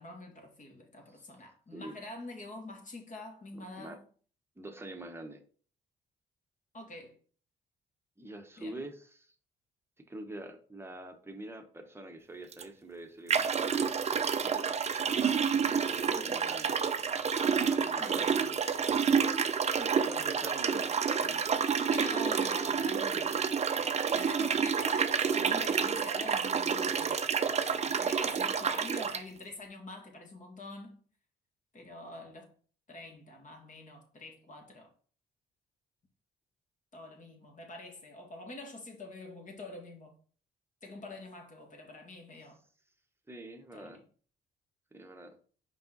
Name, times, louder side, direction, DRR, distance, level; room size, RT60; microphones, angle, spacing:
voice 1, 0.0-4.1 6.7-7.2 8.6-8.8 16.1-16.4 18.0-18.3 19.8-20.0 21.9-23.4 23.8-31.0 31.7-32.5 32.9-34.9 36.9-40.1 40.8-42.6 43.7-44.0, left 2 dB, 40° left, 2.0 m, -46 dB
voice 2, 4.6-5.4 8.2-9.3 10.0-14.7 15.9-16.8 17.4-18.7 20.0-22.3 43.3-44.0 44.9-45.4, right 1 dB, 10° right, 1.0 m, -45 dB
sound 1, 12.5-12.6 13.3-29.2, right 6 dB, 35° right, 0.6 m, -29 dB
5.4 x 4.8 x 4.0 m
cardioid pair, 90°, 20 cm